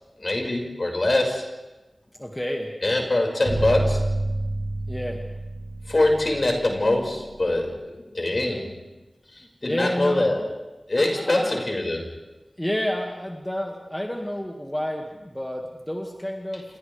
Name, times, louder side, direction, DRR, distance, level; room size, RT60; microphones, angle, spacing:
voice 1, 0.2-1.5 2.8-4.3 5.9-8.9 9.3-10.6 10.9-12.1, left 2 dB, 50° left, 0 dB, 5.6 m, -24 dB
voice 2, 2.2-2.7 4.9-5.2 9.4-10.3 11.0-11.5 12.6-16.6, equal, 15° left, 1 dB, 2.1 m, -30 dB
sound 1, 3.4-7.5, right 2 dB, 90° right, 4.6 m, -29 dB
29.0 x 28.0 x 3.5 m, 1.1 s
wide cardioid pair, 50°, 0 cm